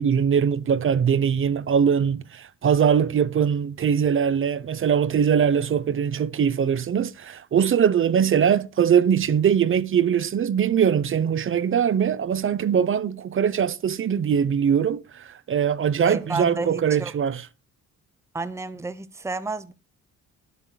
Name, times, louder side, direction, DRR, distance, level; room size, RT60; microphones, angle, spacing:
voice 1, 0.0-17.4, right 8 dB, 45° right, 0.9 m, -22 dB
voice 2, 16.0-17.1 18.3-19.7, right 3 dB, 10° right, 0.9 m, -31 dB
19.0 x 8.3 x 2.3 m
cardioid pair, 90°, 30 cm